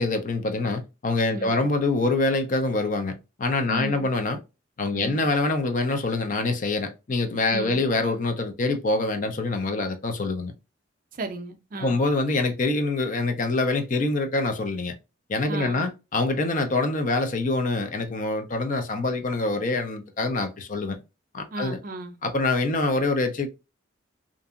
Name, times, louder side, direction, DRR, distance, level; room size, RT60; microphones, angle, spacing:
voice 1, 0.0-4.4 4.8-10.5 11.8-14.9 15.3-21.0 21.3-21.8 22.2-23.5, left 2 dB, 40° left, 0.4 m, -25 dB
voice 2, 1.3-1.7 3.7-4.1 4.9-5.3 7.5-7.9 11.1-12.0 15.5-15.9 21.5-22.2, right 2 dB, 45° right, 0.4 m, -35 dB
2.8 x 2.5 x 2.3 m
head